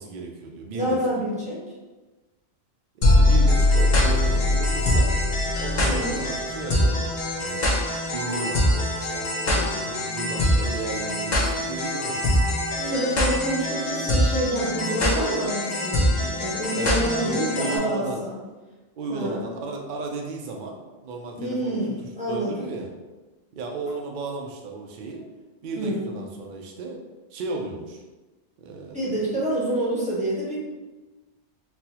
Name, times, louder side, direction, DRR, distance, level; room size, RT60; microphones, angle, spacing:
voice 1, 0.0-1.0 2.9-5.2 5.6-7.6 8.1-12.5 16.7-18.2 19.0-21.7 22.0-22.9 23.5-25.2 25.6-27.0 27.3-28.0 28.6-29.0, right 3 dB, 65° right, 0 dB, 0.4 m, -34 dB
voice 2, 0.7-1.6 5.8-6.2 12.8-18.4 19.1-19.6 21.4-22.7 25.8-26.2 28.9-30.6, right 1 dB, 5° right, -8 dB, 0.8 m, -27 dB
sound 1, 3.0-17.8, left 1 dB, 50° left, 0.6 m, -23 dB
4.1 x 2.1 x 2.8 m, 1.2 s
omnidirectional pair, 1.3 m